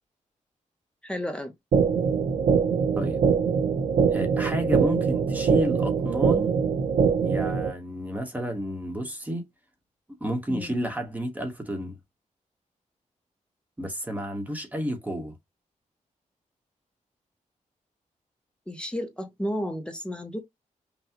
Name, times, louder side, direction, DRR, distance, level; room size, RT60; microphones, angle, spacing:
voice 1, 1.0-1.5 10.5-10.7 18.7-20.4, equal, 5° left, 0.7 m, -32 dB
sound 1, 1.7-7.7, right 6 dB, 70° right, 0.8 m, -23 dB
voice 2, 4.1-6.5 7.2-9.5 10.2-12.0 13.8-15.3, equal, 10° right, 1.0 m, -31 dB
5.7 x 2.2 x 2.9 m
wide cardioid pair, 175°, 13 cm